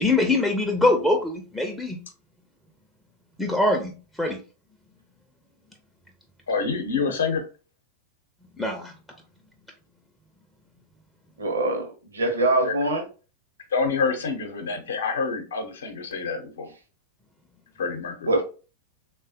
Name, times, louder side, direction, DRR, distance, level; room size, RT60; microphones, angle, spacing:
voice 1, 0.0-2.0 3.4-4.4 8.6-8.9, left 2 dB, 5° left, 3 dB, 0.4 m, -23 dB
voice 2, 6.5-7.4 12.6-12.7 13.7-16.7 17.8-18.3, left 5 dB, 65° left, 5 dB, 0.6 m, -27 dB
voice 3, 11.4-13.0 18.2-18.4, right 2 dB, 70° right, 4 dB, 0.6 m, -23 dB
3.2 x 2.2 x 2.6 m, 0.35 s
figure-of-eight pair, 90°, 0 cm